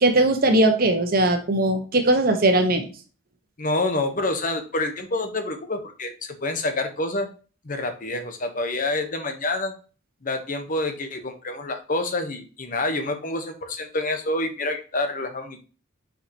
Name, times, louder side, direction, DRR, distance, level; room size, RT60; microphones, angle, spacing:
voice 1, 0.0-2.8, right 2 dB, 50° right, 5 dB, 1.2 m, -19 dB
voice 2, 3.6-7.3 7.6-9.7 10.2-15.6, left 2 dB, 45° left, 6 dB, 1.1 m, -27 dB
6.9 x 5.0 x 2.9 m, 0.36 s
head